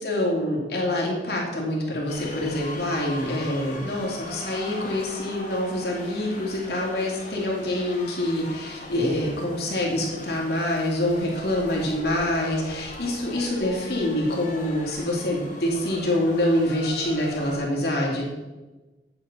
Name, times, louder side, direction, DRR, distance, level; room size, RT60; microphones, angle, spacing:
voice 1, 0.0-18.2, left 1 dB, 60° left, -2 dB, 2.2 m, -26 dB
sound 1, 2.1-17.6, left 2 dB, 45° left, 1.5 m, -40 dB
9.3 x 6.9 x 4.0 m, 1.1 s
head